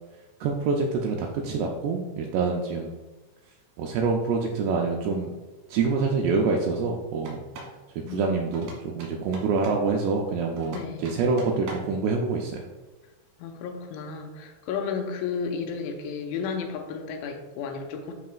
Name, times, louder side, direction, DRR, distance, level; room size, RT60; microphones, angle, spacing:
voice 1, 0.4-2.9 3.8-5.3 5.7-7.4 8.1-12.6, right 4 dB, 85° right, 1 dB, 2.4 m, -26 dB
sound 1, 7.2-7.8 8.5-9.9 10.6-12.0, right 1 dB, 60° right, 2.3 m, -41 dB
voice 2, 8.1-8.4 10.7-11.1 13.4-18.1, left 5 dB, 85° left, 3 dB, 3.0 m, -33 dB
11.5 x 4.1 x 2.4 m, 1.2 s
omnidirectional pair, 5.3 m